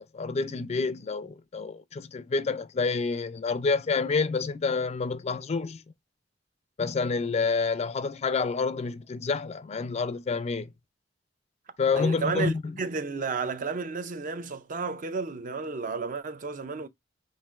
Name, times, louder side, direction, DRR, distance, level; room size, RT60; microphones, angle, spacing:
voice 1, 0.0-5.8 6.8-10.7 11.8-12.6, left 4 dB, 35° left, 0.4 m, -28 dB
voice 2, 12.0-16.9, right 4 dB, 45° right, 0.5 m, -32 dB
5.4 x 2.4 x 2.4 m
head